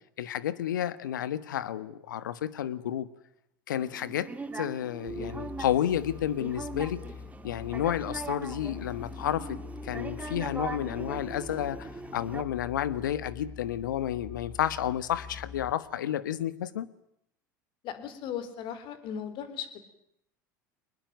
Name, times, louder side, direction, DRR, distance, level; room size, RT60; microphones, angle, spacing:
voice 1, 0.2-3.1 3.7-4.3 4.5-7.0 7.4-16.9, left 11 dB, 75° left, 17 dB, 1.3 m, -31 dB
sound 1, 3.8-12.4, right 3 dB, 15° right, 2.1 m, -40 dB
sound 2, 5.1-15.7, left 6 dB, 30° left, 3.6 m, -45 dB
voice 2, 17.8-19.8, left 8 dB, 50° left, 13 dB, 3.9 m, -37 dB
23.5 x 21.0 x 9.1 m, 0.77 s
hypercardioid pair, 80°, 10 cm